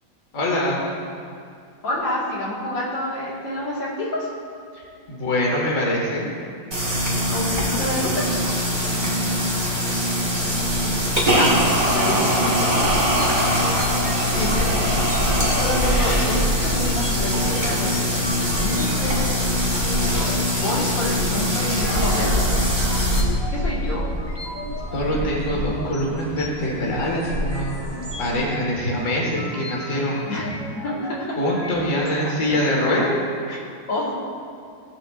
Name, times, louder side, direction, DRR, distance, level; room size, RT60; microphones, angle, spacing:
voice 1, 0.3-0.8 4.7-6.3 24.9-27.8 28.2-30.3 31.4-33.2, left 1 dB, 45° left, -2 dB, 1.9 m, -24 dB
voice 2, 1.8-4.3 7.3-8.3 11.2-11.6 11.9-13.1 14.3-14.7 15.5-18.0 18.3-19.8 20.5-22.6 23.5-24.1 30.3-30.5 30.7-31.3 32.2-32.3 33.5-33.6 33.9-34.1, left 1 dB, 80° left, -5 dB, 2.5 m, -28 dB
sound 1, 6.7-23.2, left 1 dB, 20° right, 1.6 m, -22 dB
sound 2, 10.3-28.4, equal, 60° left, 3.0 m, -29 dB
sound 3, 12.9-32.1, left 1 dB, 20° left, 0.7 m, -37 dB
18.0 x 7.1 x 2.5 m, 2.4 s
omnidirectional pair, 2.0 m